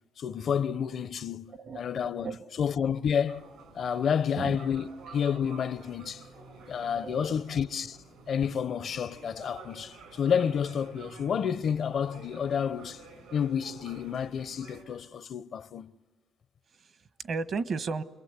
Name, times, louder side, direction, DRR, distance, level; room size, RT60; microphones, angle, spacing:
voice 1, 0.2-2.3 2.6-3.4 3.7-6.2 6.7-8.0 8.3-13.0 13.3-15.9, left 7 dB, 60° left, 0.8 m, -30 dB
voice 2, 1.5-2.6 4.2-4.6 6.8-7.6 16.7-18.0, right 4 dB, 55° right, 1.3 m, -36 dB
sound 1, 3.3-14.8, right 3 dB, 80° right, 7.0 m, -50 dB
29.5 x 22.0 x 8.3 m
cardioid pair, 90°, 0 cm